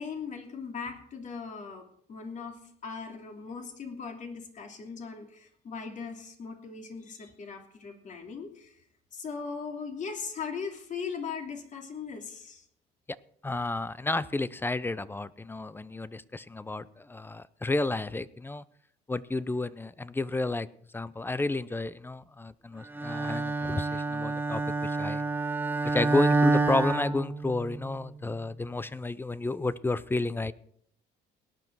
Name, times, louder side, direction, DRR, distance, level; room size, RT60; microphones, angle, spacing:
voice 1, 0.0-8.7 9.1-12.6, left 5 dB, 45° left, 4 dB, 2.9 m, -39 dB
voice 2, 13.4-18.6 19.1-20.7 20.9-25.2 25.8-30.5, left 2 dB, 10° left, 18 dB, 0.6 m, -31 dB
Bowed string instrument, 22.9-27.9, right 3 dB, 10° right, 0.9 m, -28 dB
18.0 x 10.5 x 4.7 m, 0.66 s
cardioid pair, 110°, 17 cm